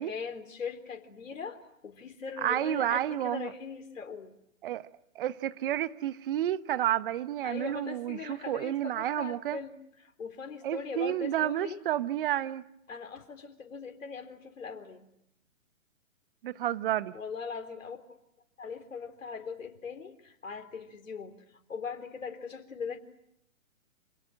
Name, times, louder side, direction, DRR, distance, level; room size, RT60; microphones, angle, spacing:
voice 1, 0.0-4.3 7.4-9.7 10.0-11.8 12.9-15.1 17.1-18.0 18.6-23.0, left 5 dB, 70° left, 4.0 m, -40 dB
voice 2, 2.4-3.5 4.6-4.8 5.1-9.6 10.6-12.6 16.4-17.1, right 12 dB, 40° right, 1.2 m, -30 dB
28.5 x 27.0 x 7.7 m
figure-of-eight pair, 130°, 41 cm